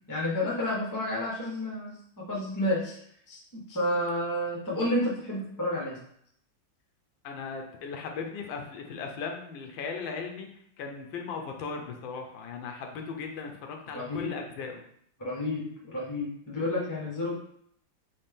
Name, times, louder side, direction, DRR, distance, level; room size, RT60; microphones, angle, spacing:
voice 1, 0.1-3.0 3.3-6.0 13.9-14.4 15.2-17.4, left 1 dB, 15° left, -3 dB, 0.6 m, -30 dB
voice 2, 7.2-10.5 10.8-14.8, left 5 dB, 80° left, 3 dB, 1.4 m, -37 dB
4.3 x 3.2 x 3.4 m, 0.69 s
omnidirectional pair, 2.1 m